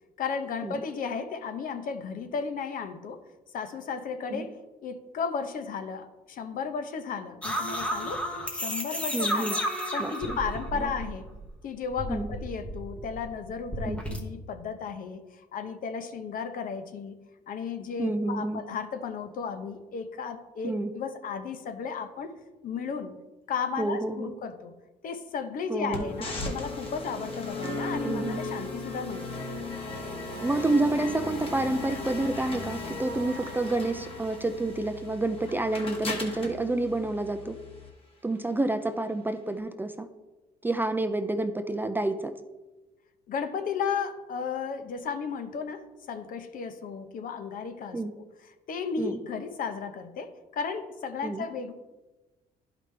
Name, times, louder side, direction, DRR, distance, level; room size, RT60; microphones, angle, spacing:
voice 1, 0.2-3.2 3.5-4.6 4.8-8.2 8.5-9.6 9.9-11.3 11.6-17.2 17.5-23.1 23.5-24.7 25.0-29.3 43.3-48.0 48.7-51.7, left 6 dB, 55° left, 8 dB, 0.8 m, -34 dB
sound 1, 7.4-11.4 11.7-14.2, equal, 5° left, 1.0 m, -33 dB
voice 2, 9.1-9.6 10.0-10.4 10.7-10.9 12.1-12.3 13.9-14.0 18.0-18.6 20.6-20.9 23.8-24.3 25.7-26.0 28.0-28.4 30.4-37.6 38.2-40.1 40.6-42.3 47.9-48.1 49.0-49.2 51.2-51.5, right 2 dB, 10° right, 7 dB, 0.4 m, -29 dB
sound 2, 25.9-37.9, left 2 dB, 35° left, 1.5 m, -36 dB
11.0 x 5.0 x 3.3 m, 1.1 s
cardioid pair, 110°, 17 cm